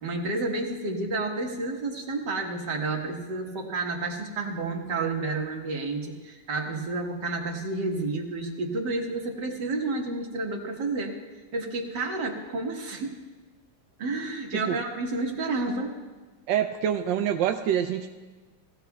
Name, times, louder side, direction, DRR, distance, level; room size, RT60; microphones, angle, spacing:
voice 1, 0.0-11.2 11.5-13.1 14.0-16.0, right 3 dB, 55° right, 1 dB, 2.0 m, -30 dB
voice 2, 16.5-18.1, right 9 dB, 75° right, 5 dB, 1.1 m, -26 dB
19.0 x 15.0 x 2.3 m, 1.3 s
omnidirectional pair, 2.2 m